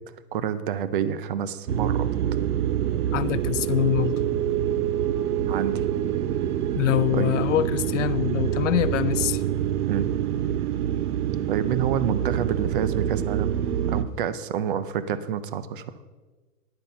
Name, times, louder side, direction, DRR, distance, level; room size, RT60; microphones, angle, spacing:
voice 1, 0.3-2.1 5.5-5.8 7.1-7.4 9.9-10.1 11.5-15.8, right 8 dB, 35° right, 13 dB, 0.5 m, -28 dB
sound 1, 1.7-14.0, right 10 dB, 70° right, 0.8 m, -26 dB
voice 2, 3.1-4.1 6.7-9.4, left 12 dB, 50° left, 14 dB, 0.6 m, -24 dB
9.8 x 8.8 x 5.5 m, 1.3 s
hypercardioid pair, 155°, 47 cm